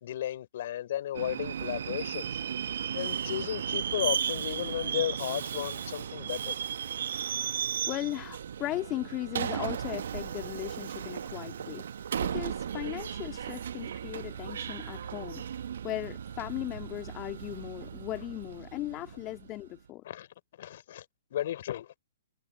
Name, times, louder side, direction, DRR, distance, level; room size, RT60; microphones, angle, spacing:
voice 1, 0.0-2.4 2.9-6.6 20.0-20.3 20.6-21.0 21.3-22.0, left 12 dB, 55° left, 3.7 m, -34 dB
Subway metro underground, 1.1-19.6, right 8 dB, 65° right, 1.2 m, -35 dB
voice 2, 7.9-11.9 12.2-15.4 15.8-20.0, left 16 dB, 30° left, 2.0 m, -37 dB
figure-of-eight pair, 120°, 0 cm